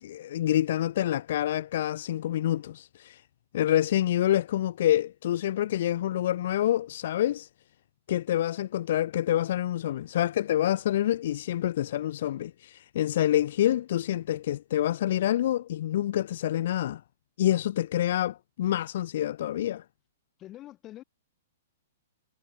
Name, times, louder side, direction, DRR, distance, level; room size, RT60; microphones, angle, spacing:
voice 1, 0.0-3.2 3.5-7.5 8.1-17.0 17.4-19.8, left 12 dB, 60° left, 0.4 m, -27 dB
voice 2, 20.4-21.0, left 14 dB, 25° left, 2.1 m, -45 dB
hypercardioid pair, 155°, 0 cm